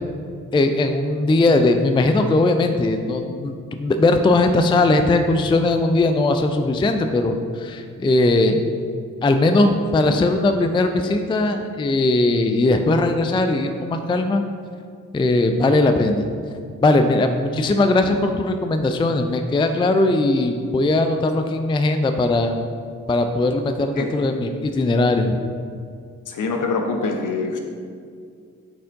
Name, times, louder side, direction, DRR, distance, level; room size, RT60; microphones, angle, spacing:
voice 1, 0.5-3.5 3.8-8.6 9.2-14.4 15.1-16.3 16.8-22.6 23.1-25.4, left 2 dB, 15° left, 6 dB, 0.4 m, -19 dB
voice 2, 26.3-27.6, left 3 dB, 55° left, 3 dB, 0.9 m, -24 dB
8.9 x 4.3 x 2.6 m, 2.2 s
hypercardioid pair, 40°, 36 cm